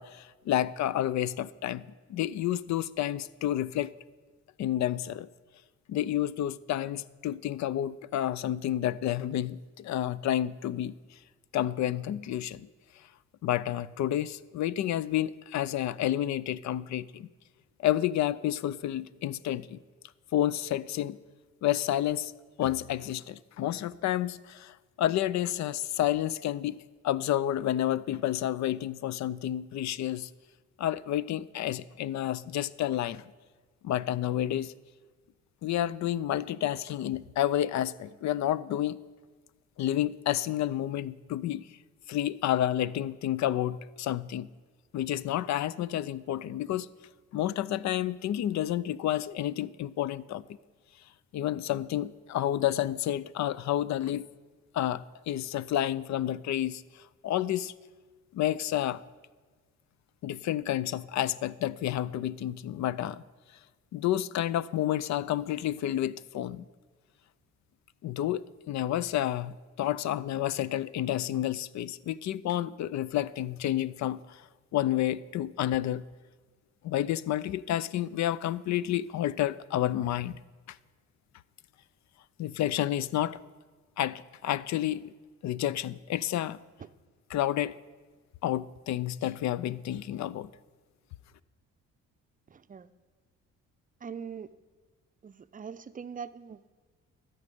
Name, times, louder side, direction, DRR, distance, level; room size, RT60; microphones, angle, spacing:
voice 1, 0.0-1.8 2.1-3.9 4.6-5.3 5.9-10.9 11.5-12.7 13.4-17.3 17.8-19.8 20.3-21.2 21.6-22.3 22.6-30.3 30.8-33.2 33.8-34.7 35.6-39.0 39.8-41.7 42.1-44.5 44.9-46.9 47.3-50.4 51.3-54.3 54.7-57.7 58.3-59.0 60.2-63.2 63.9-66.6 68.0-76.0 76.8-80.4 80.7-80.8 82.4-83.4 84.0-85.1 85.4-86.6 87.3-87.7 88.4-90.5, left 12 dB, 65° left, 0.5 m, -30 dB
voice 2, 92.5-92.9 94.0-94.5 95.2-96.7, right 6 dB, 30° right, 0.5 m, -42 dB
13.0 x 5.4 x 8.4 m
cardioid pair, 90°, 30 cm